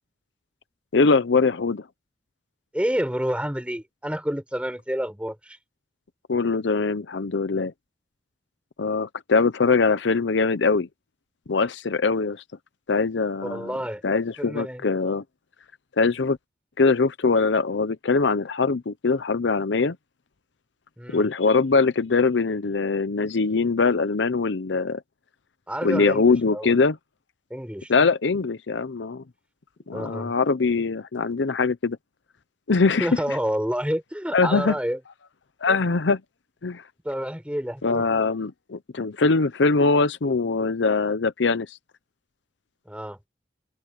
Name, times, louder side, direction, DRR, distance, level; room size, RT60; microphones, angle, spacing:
voice 1, 0.9-1.8 6.3-7.7 8.8-10.9 11.5-12.4 12.9-13.7 14.0-15.2 16.0-16.4 16.8-20.0 21.1-25.0 25.8-27.0 27.9-29.2 29.9-32.0 32.7-33.4 34.3-34.8 35.6-36.2 36.6-36.8 37.8-41.8, left 4 dB, 70° left, 0.7 m, -22 dB
voice 2, 2.7-5.6 13.4-14.0 14.4-14.8 21.0-21.2 25.7-26.8 27.5-28.1 29.9-30.4 33.0-35.0 35.7-35.9 37.0-38.1 42.9-43.2, equal, 5° right, 5.7 m, -29 dB
open air
head